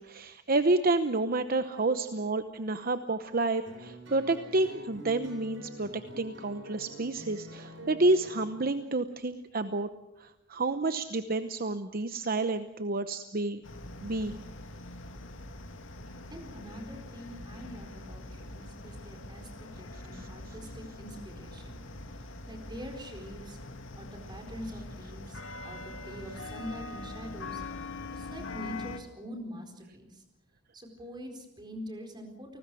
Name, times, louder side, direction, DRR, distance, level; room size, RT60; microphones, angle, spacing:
voice 1, 0.0-9.9 10.2-13.6 14.0-14.4, right 2 dB, 50° right, 10 dB, 0.9 m, -29 dB
sound 1, 3.7-8.7, right 1 dB, 75° right, 7.7 m, -46 dB
sound 2, 13.6-29.0, left 2 dB, 75° left, 2.4 m, -43 dB
voice 2, 16.3-21.8 22.2-23.6 24.0-27.6 28.1-30.2 30.7-32.6, equal, 20° right, 4 dB, 4.4 m, -44 dB
29.5 x 19.5 x 6.3 m, 0.91 s
head